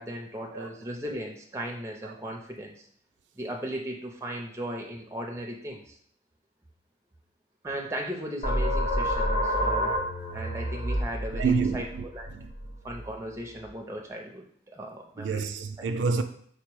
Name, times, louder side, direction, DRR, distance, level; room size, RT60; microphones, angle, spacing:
voice 1, 0.0-2.7 3.3-6.0 7.6-10.0 10.3-11.9 12.1-12.3 12.8-15.5, right 1 dB, 15° right, 0.4 m, -37 dB
sound 1, 8.4-13.7, equal, 40° left, 0.6 m, -29 dB
voice 2, 11.4-12.0 12.3-12.5 15.2-16.2, right 5 dB, 80° right, 0.4 m, -28 dB
4.9 x 2.0 x 4.6 m
head